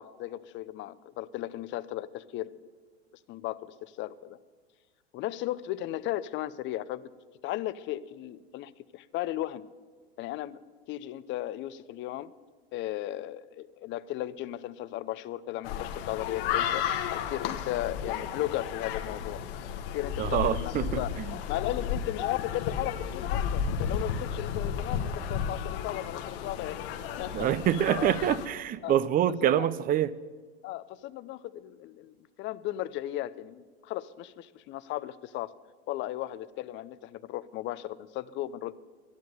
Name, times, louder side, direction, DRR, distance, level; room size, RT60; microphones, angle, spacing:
voice 1, 0.0-2.5 3.3-4.4 5.1-7.1 7.4-9.7 10.2-10.6 10.9-12.3 12.7-16.8 17.3-19.4 19.9-21.1 21.5-26.8 27.2-27.5 27.9-28.1 28.8-28.9 29.4-29.7 30.6-35.5 35.9-38.7, left 14 dB, 35° left, 16 dB, 0.6 m, -36 dB
sound 1, 15.6-28.5, left 8 dB, 60° left, 1.4 m, -33 dB
voice 2, 20.2-21.0 27.3-30.1, right 11 dB, 25° right, 18 dB, 0.6 m, -26 dB
12.0 x 10.5 x 9.3 m, 1.5 s
hypercardioid pair, 100°, 32 cm